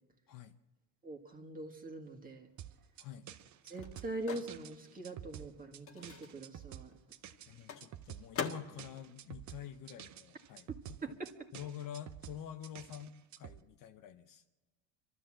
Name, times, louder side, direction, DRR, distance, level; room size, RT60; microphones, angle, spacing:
voice 1, 1.0-2.5 3.6-6.9 11.0-11.3, right 2 dB, 20° right, 3 dB, 2.0 m, -43 dB
Microwave oven, 2.4-10.5 10.8-12.7, left 6 dB, 30° left, 1.5 m, -47 dB
sound 1, 2.6-13.6, right 11 dB, 40° right, 0.7 m, -50 dB
voice 2, 3.0-3.3 7.5-11.2 11.5-14.4, left 10 dB, 45° left, 8 dB, 0.9 m, -47 dB
28.0 x 13.0 x 7.5 m, 1.2 s
supercardioid pair, 125°, 45 cm